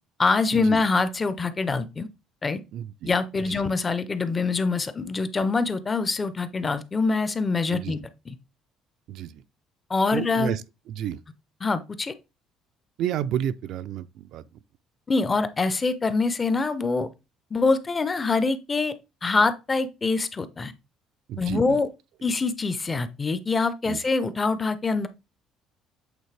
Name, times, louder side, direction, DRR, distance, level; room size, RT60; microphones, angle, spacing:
voice 1, 0.2-2.1 2.4-2.6 3.0-8.0 8.3-8.4 9.9-10.6 11.6-12.1 15.1-17.1 17.5-18.9 19.2-20.7 21.4-21.9 22.2-25.1, left 4 dB, 15° left, 0.5 m, -24 dB
voice 2, 2.7-3.1 3.5-3.6 7.7-7.9 9.1-9.3 10.1-10.6 11.0-11.2 13.0-14.4 21.3-21.8 23.9-24.0, right 10 dB, 55° right, 0.3 m, -30 dB
8.1 x 3.9 x 3.2 m
cardioid pair, 180°, 0 cm